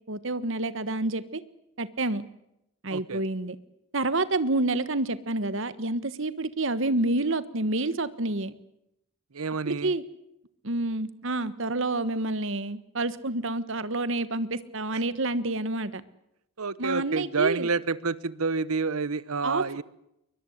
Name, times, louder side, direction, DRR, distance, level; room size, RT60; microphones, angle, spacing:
voice 1, 0.1-1.4 1.8-2.2 2.8-3.6 3.9-8.5 9.6-10.0 10.6-16.0 16.8-17.7 19.4-19.8, right 2 dB, 60° right, 15 dB, 1.4 m, -28 dB
voice 2, 2.9-3.2 9.3-9.9 16.6-19.8, right 4 dB, 80° right, 19 dB, 1.0 m, -28 dB
23.0 x 21.5 x 8.0 m, 0.82 s
head